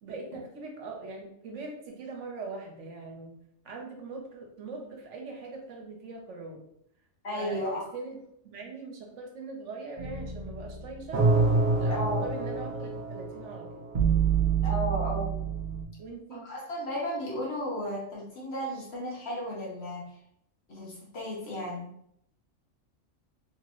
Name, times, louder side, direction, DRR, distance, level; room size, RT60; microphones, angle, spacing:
voice 1, 0.0-3.4 3.6-6.6 7.3-8.2 8.4-11.3 11.8-13.8 16.0-16.5, right 3 dB, 70° right, 1 dB, 1.0 m, -41 dB
voice 2, 7.2-7.9 11.9-12.2 14.6-15.5 16.4-20.2 20.7-22.0, left 1 dB, 55° left, -4 dB, 1.3 m, -34 dB
sound 1, 10.0-15.8, right 4 dB, 50° right, 0.6 m, -27 dB
3.2 x 2.9 x 2.9 m, 0.71 s
omnidirectional pair, 1.3 m